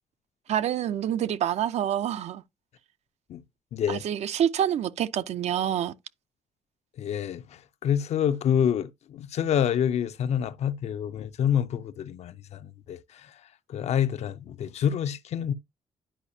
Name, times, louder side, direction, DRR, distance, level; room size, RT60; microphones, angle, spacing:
voice 1, 0.5-2.4 3.9-5.9, right 10 dB, 65° right, 0.5 m, -27 dB
voice 2, 3.7-4.0 7.0-13.3 13.7-15.5, left 9 dB, 65° left, 0.5 m, -27 dB
10.0 x 4.9 x 2.7 m
cardioid pair, 145°, 12 cm